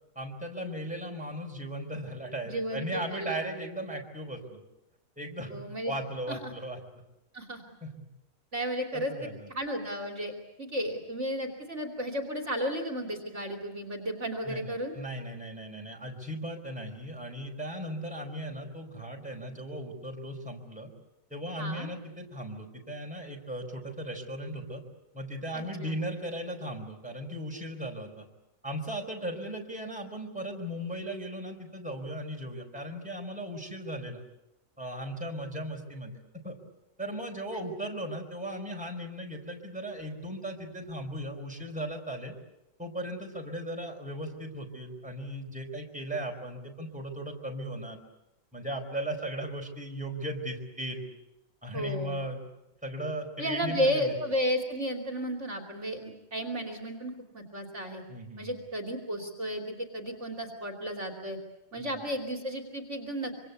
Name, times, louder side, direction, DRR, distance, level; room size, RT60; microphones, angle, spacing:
voice 1, 0.1-4.6 5.2-6.8 7.8-8.1 8.9-9.5 14.4-20.9 21.3-24.8 25.1-28.2 28.6-34.2 34.8-36.2 36.4-36.6 37.0-42.3 42.8-48.0 48.5-51.1 51.6-52.5 52.8-54.1 58.1-58.6 61.8-62.0, right 1 dB, 5° right, 1 dB, 4.5 m, -37 dB
voice 2, 2.4-3.4 5.5-5.9 6.3-6.5 7.3-7.6 8.5-9.1 9.5-10.3 10.6-14.9 21.6-21.9 25.5-25.9 37.5-37.6 51.7-52.2 53.4-58.0 58.4-61.4 61.7-63.3, equal, 40° right, 2 dB, 3.1 m, -33 dB
26.0 x 25.5 x 8.2 m, 0.93 s
omnidirectional pair, 1.8 m